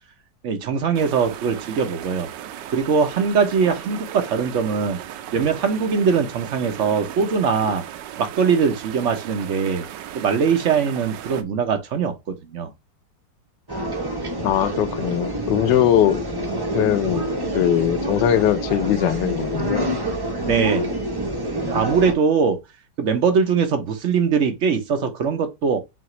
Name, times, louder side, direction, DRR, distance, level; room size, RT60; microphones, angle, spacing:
voice 1, 0.4-2.3 2.7-5.0 5.3-7.9 8.2-9.9 10.1-12.7 20.4-20.9 21.7-22.6 23.0-25.8, right 6 dB, 60° right, 0.8 m, -21 dB
sound 1, 0.9-11.4, right 11 dB, 75° right, 1.2 m, -36 dB
sound 2, 13.7-22.1, right 1 dB, 30° right, 0.4 m, -27 dB
voice 2, 14.4-16.2 16.7-17.3 17.5-20.0, left 11 dB, 75° left, 1.3 m, -20 dB
5.8 x 2.5 x 3.0 m
omnidirectional pair, 2.0 m